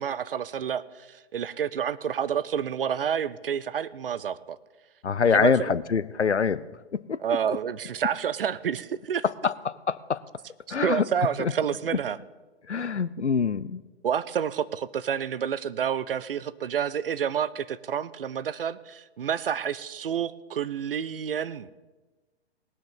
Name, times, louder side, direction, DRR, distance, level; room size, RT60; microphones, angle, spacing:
voice 1, 0.0-4.6 5.3-5.7 7.2-9.2 10.7-12.2 14.0-21.7, right 8 dB, 55° right, 18 dB, 0.6 m, -29 dB
voice 2, 5.0-6.6 6.9-7.2 9.4-10.2 10.7-11.0 11.4-11.5 12.7-13.8, left 6 dB, 90° left, 16 dB, 0.6 m, -25 dB
18.5 x 6.5 x 7.3 m, 1.2 s
figure-of-eight pair, 125°, 33 cm